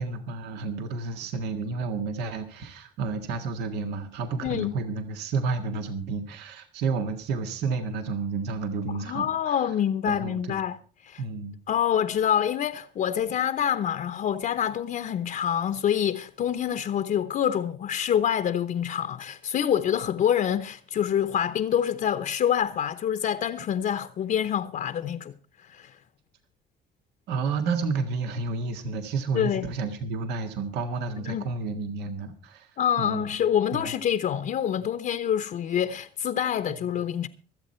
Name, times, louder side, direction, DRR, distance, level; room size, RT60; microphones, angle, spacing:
voice 1, 0.0-9.7 10.1-10.6 11.2-11.6 27.3-33.4 33.7-33.9, right 4 dB, 80° right, 1.8 m, -31 dB
voice 2, 4.4-4.7 8.9-10.8 11.0-11.2 11.7-25.3 25.6-25.9 29.3-29.7 31.3-31.5 32.8-37.3, left 9 dB, 55° left, 0.8 m, -26 dB
25.0 x 8.4 x 4.3 m
cardioid pair, 110°, 17 cm